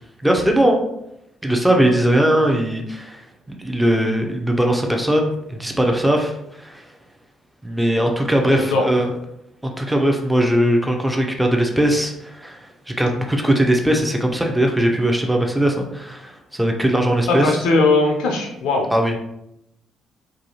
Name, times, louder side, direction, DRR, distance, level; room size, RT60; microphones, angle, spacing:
voice 1, 0.2-0.9 1.4-3.3 3.6-6.9 7.6-9.1 9.6-17.6 18.9-19.2, right 1 dB, 5° right, 2 dB, 0.5 m, -19 dB
voice 2, 8.5-8.9 17.3-18.9, left 3 dB, 70° left, 2 dB, 0.4 m, -19 dB
2.5 x 2.3 x 2.9 m, 0.80 s
hypercardioid pair, 45°, 0 cm